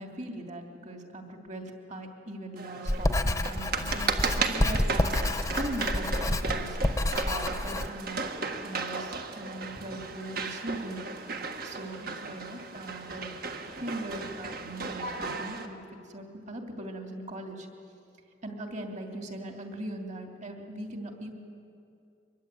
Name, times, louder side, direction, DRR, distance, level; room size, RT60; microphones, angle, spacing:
voice 1, 0.0-11.0 11.6-13.3 13.7-15.8 16.1-17.7 18.4-21.3, right 1 dB, 45° right, 3 dB, 2.9 m, -40 dB
sound 1, 2.6-15.7, right 4 dB, 60° right, 1.7 m, -35 dB
Writing, 2.9-7.9, left 1 dB, 20° left, 0.9 m, -28 dB
24.0 x 22.0 x 9.1 m, 2.5 s
head